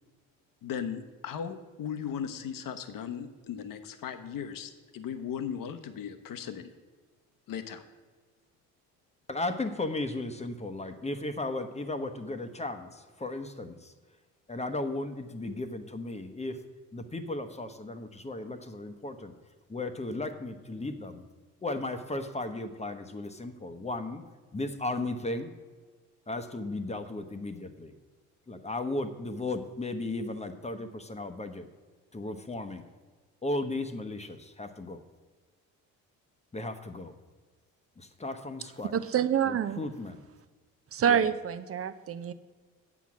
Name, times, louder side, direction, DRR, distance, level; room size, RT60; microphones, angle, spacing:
voice 1, 0.6-6.7 7.5-7.8, left 8 dB, 55° left, 9 dB, 1.0 m, -37 dB
voice 2, 9.3-13.9 14.5-16.6 16.9-19.3 19.7-21.3 21.6-24.2 24.5-25.5 26.3-27.9 28.5-31.7 32.1-32.8 33.4-35.0 36.5-37.1 38.0-38.9 39.4-40.2 41.1-41.3, left 2 dB, 15° left, 8 dB, 0.9 m, -35 dB
voice 3, 38.9-39.8 40.9-42.3, right 8 dB, 35° right, 13 dB, 0.6 m, -27 dB
8.2 x 6.0 x 6.1 m, 1.4 s
hypercardioid pair, 55°, 39 cm